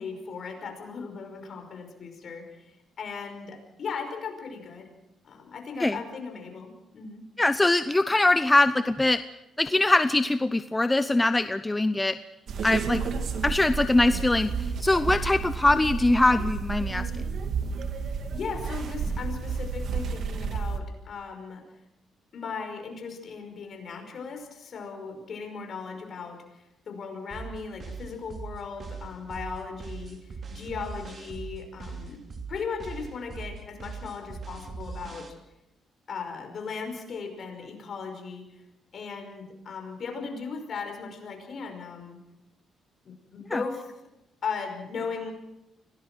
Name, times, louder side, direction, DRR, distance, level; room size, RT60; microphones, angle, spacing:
voice 1, 0.0-4.9 5.2-7.2 18.0-21.6 22.3-26.4 26.9-30.2 30.5-32.2 32.5-35.3 36.1-38.5 38.9-42.2 43.1-44.0 44.4-45.3, left 5 dB, 55° left, 4 dB, 5.5 m, -37 dB
voice 2, 7.4-9.2 9.6-12.2 12.6-13.0 13.4-14.5 14.8-17.1 43.5-43.6, left 2 dB, 15° left, 12 dB, 0.7 m, -22 dB
sound 1, 12.5-20.8, right 5 dB, 60° right, 2.2 m, -31 dB
sound 2, 27.3-35.3, right 4 dB, 45° right, 2.7 m, -40 dB
25.0 x 18.0 x 6.3 m, 0.90 s
cardioid pair, 90°, 0 cm